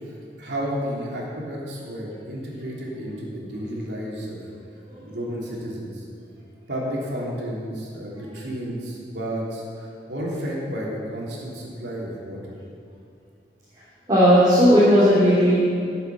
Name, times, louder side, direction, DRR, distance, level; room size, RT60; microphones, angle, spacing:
voice 1, 0.0-4.4 5.0-6.0 6.7-12.5, equal, 80° right, -4 dB, 3.1 m, -32 dB
voice 2, 14.1-15.6, equal, 25° right, -11 dB, 3.1 m, -16 dB
12.5 x 7.9 x 7.2 m, 2.4 s
head